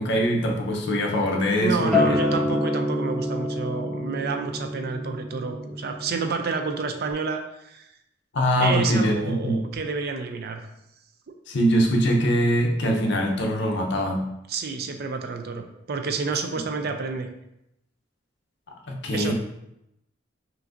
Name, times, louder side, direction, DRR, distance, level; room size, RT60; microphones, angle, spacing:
voice 1, 0.0-2.4 8.3-9.8 11.5-14.3 18.9-19.3, equal, 65° left, 1 dB, 0.7 m, -23 dB
voice 2, 1.6-7.9 8.6-10.7 14.5-17.3 19.1-19.3, right 4 dB, 55° right, 6 dB, 0.5 m, -29 dB
Acoustic guitar, 1.9-7.1, left 1 dB, 5° left, 0.5 m, -27 dB
5.8 x 2.6 x 2.5 m, 0.83 s
head